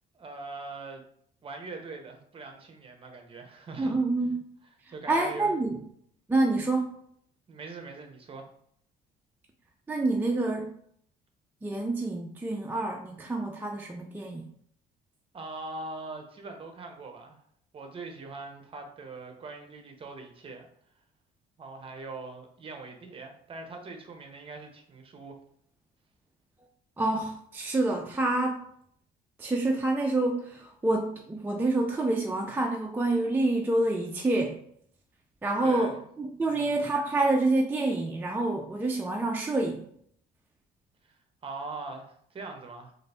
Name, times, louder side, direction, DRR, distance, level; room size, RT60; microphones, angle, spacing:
voice 1, 0.1-1.0 1.4-4.0 4.9-5.6 6.6-6.7 7.5-8.5 15.3-17.4 17.7-20.7 21.6-25.3 35.6-36.0 36.5-36.8 41.0-42.9, right 3 dB, 35° right, 4 dB, 0.8 m, -42 dB
voice 2, 3.8-4.3 5.1-5.8 6.3-6.9 9.9-10.7 11.6-14.5 27.0-28.6 29.4-34.6 35.4-39.8, right 2 dB, 10° right, 1 dB, 0.4 m, -27 dB
3.8 x 2.5 x 3.3 m, 0.66 s
cardioid pair, 110°, 17 cm